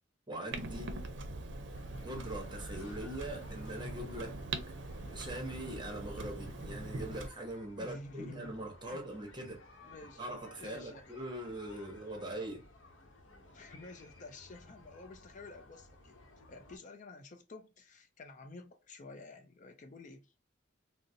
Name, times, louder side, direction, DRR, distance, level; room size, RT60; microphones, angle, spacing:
voice 1, 0.3-0.9 2.0-4.4 5.1-9.6 10.2-12.7, right 1 dB, 25° right, 0.9 m, -42 dB
Clock, 0.5-7.3, right 2 dB, 65° right, 0.5 m, -42 dB
sound 1, 1.5-16.8, left 2 dB, 85° left, 0.8 m, -58 dB
voice 2, 7.8-8.5 8.8-9.1 9.8-10.3 10.5-11.1 13.5-20.3, left 2 dB, 40° left, 0.5 m, -51 dB
3.8 x 2.0 x 2.6 m
head